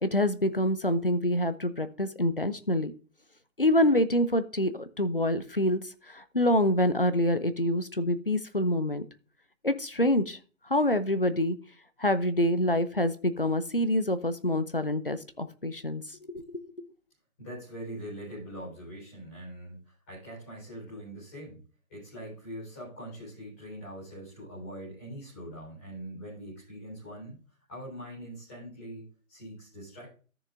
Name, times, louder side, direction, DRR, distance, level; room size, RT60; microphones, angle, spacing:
voice 1, 0.0-2.9 3.6-5.8 6.1-9.0 9.6-10.4 10.7-11.6 12.0-16.0 16.3-16.9, left 1 dB, 40° left, 11 dB, 0.7 m, -26 dB
voice 2, 17.4-21.6 21.9-27.4 27.7-30.1, equal, 10° left, -10 dB, 4.1 m, -42 dB
13.5 x 6.8 x 2.5 m, 0.37 s
figure-of-eight pair, 165°, 43 cm